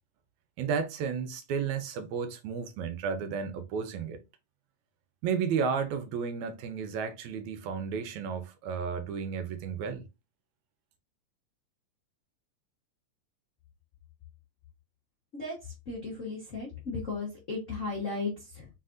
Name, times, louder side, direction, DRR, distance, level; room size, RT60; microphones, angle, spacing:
voice 1, 0.6-4.2 5.2-10.0, right 6 dB, 80° right, 2.0 m, -32 dB
voice 2, 15.3-18.7, left 3 dB, 65° left, 0.7 m, -36 dB
4.2 x 4.0 x 2.5 m
omnidirectional pair, 3.3 m